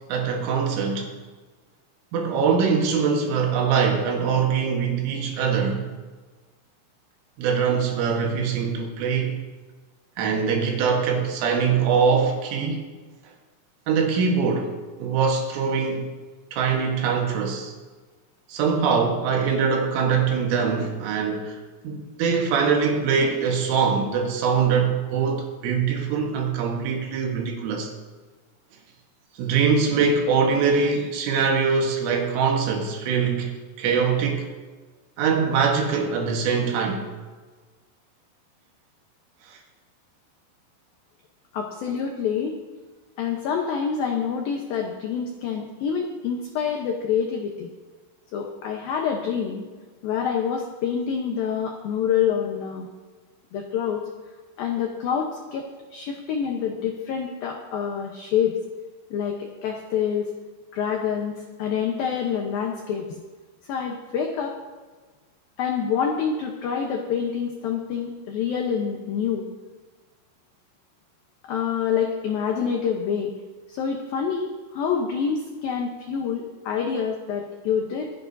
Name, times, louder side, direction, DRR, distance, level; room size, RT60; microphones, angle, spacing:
voice 1, 0.1-1.1 2.1-5.9 7.4-9.4 10.2-12.8 13.9-14.7 15.0-16.1 16.5-17.7 18.5-21.6 21.8-27.9 29.4-33.5 33.8-34.5 35.2-37.1 39.5-39.6, right 5 dB, 85° right, 1 dB, 3.9 m, -23 dB
voice 2, 41.5-42.6 43.2-47.7 48.3-49.7 50.0-52.9 53.5-54.0 54.6-58.6 59.1-60.3 60.7-63.2 63.7-64.6 65.6-69.5 71.5-73.3 73.7-78.1, left 7 dB, 80° left, 1 dB, 2.1 m, -27 dB
26.0 x 9.4 x 2.7 m, 1.3 s
omnidirectional pair, 5.5 m